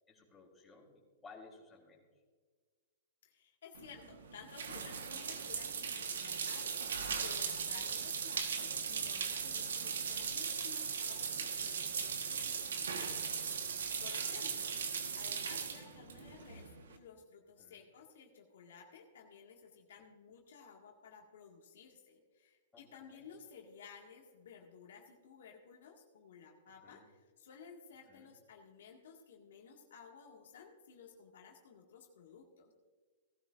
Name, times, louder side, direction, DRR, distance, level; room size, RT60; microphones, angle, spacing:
voice 1, 0.1-2.1 14.0-14.5 17.6-17.8 19.9-20.0 22.7-23.3 26.8-27.1 28.1-28.3, left 4 dB, 15° left, -2 dB, 3.5 m, -58 dB
voice 2, 3.2-13.4 14.0-32.7, left 6 dB, 75° left, 1 dB, 2.0 m, -56 dB
sound 1, 3.7-17.0, right 6 dB, 85° right, 1.4 m, -38 dB
18.0 x 12.5 x 2.6 m, 1.5 s
hypercardioid pair, 135°, 0 cm